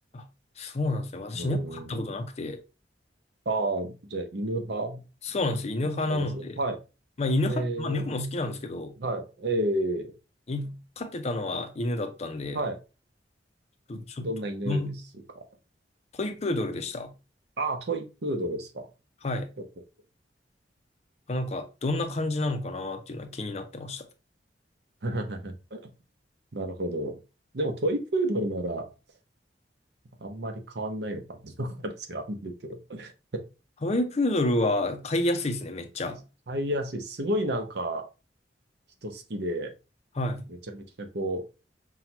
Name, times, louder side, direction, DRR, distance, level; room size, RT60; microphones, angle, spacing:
voice 1, 0.6-2.6 5.2-6.6 7.2-8.9 10.5-12.6 13.9-14.3 14.7-15.0 16.1-17.1 19.2-19.5 21.3-24.0 33.8-36.2 40.2-40.4, left 2 dB, 35° left, 0.5 m, -29 dB
voice 2, 1.3-2.1 3.5-5.0 6.1-6.8 7.5-8.0 9.0-10.1 12.5-12.8 13.9-14.8 15.4-15.5 17.6-18.9 25.0-25.9 26.5-27.2 27.5-28.9 30.2-33.4 36.5-38.1 39.0-39.7 40.7-41.4, right 1 dB, 65° right, 0.8 m, -31 dB
5.7 x 2.3 x 2.9 m
head